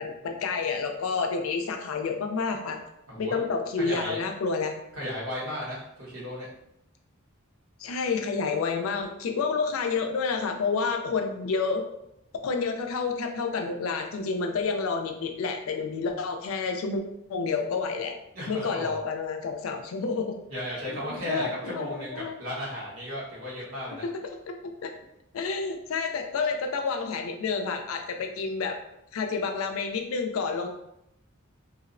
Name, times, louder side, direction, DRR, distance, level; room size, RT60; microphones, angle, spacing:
voice 1, 0.0-2.8 3.2-4.8 7.8-11.8 12.4-17.0 17.3-18.2 18.5-20.4 20.9-22.4 24.0-24.5 24.8-24.9 25.3-28.8 29.1-30.7, left 4 dB, 80° left, 4 dB, 0.4 m, -29 dB
voice 2, 3.1-3.4 3.8-4.2 5.0-6.5 18.3-19.0 20.5-24.0, equal, 85° right, -7 dB, 1.1 m, -35 dB
2.7 x 2.0 x 2.5 m, 0.81 s
head